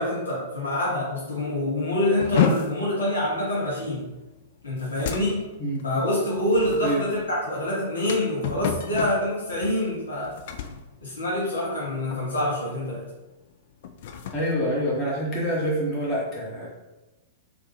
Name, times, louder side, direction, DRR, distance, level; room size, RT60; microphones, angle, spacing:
voice 1, 0.0-4.1 4.6-5.4 5.8-10.4 11.0-13.1, left 1 dB, 75° left, -4 dB, 0.9 m, -26 dB
sound 1, 2.2-11.8 12.1-12.5 12.9-13.1 13.7-15.6, left 7 dB, 55° left, 0.3 m, -31 dB
voice 2, 14.3-16.7, equal, 30° left, -5 dB, 1.4 m, -26 dB
3.4 x 2.5 x 3.2 m, 1.1 s
figure-of-eight pair, 100°, 0 cm